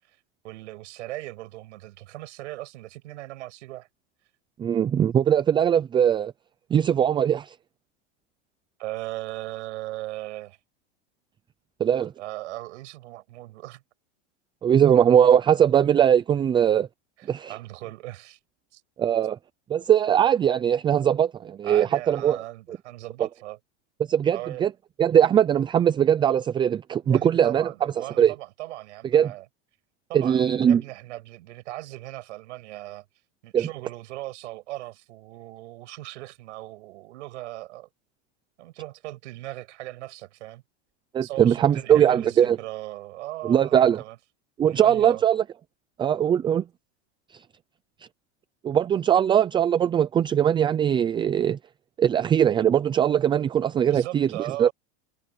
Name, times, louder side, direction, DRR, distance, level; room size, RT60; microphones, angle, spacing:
voice 1, 0.4-3.9 8.8-10.6 12.2-13.8 17.2-18.4 18.7-18.8 21.6-23.6 24.3-24.6 27.0-29.4 30.1-33.0 33.4-37.9 38.6-40.6 41.2-44.2 44.7-45.2 53.9-54.7, right 17 dB, 80° right, 7.7 m, -38 dB
voice 2, 4.6-6.3 6.7-7.6 11.8-12.1 14.6-16.9 17.3-17.6 19.0-19.4 19.7-22.4 23.2-23.3 24.1-24.7 25.0-28.3 29.1-29.3 30.1-30.8 33.5-33.7 41.1-42.6 43.4-44.0 44.6-45.4 46.0-46.6 47.3-47.4 48.6-51.6 52.0-54.3 54.6-54.7, right 9 dB, 15° right, 0.4 m, -20 dB
supercardioid pair, 140°, 35 cm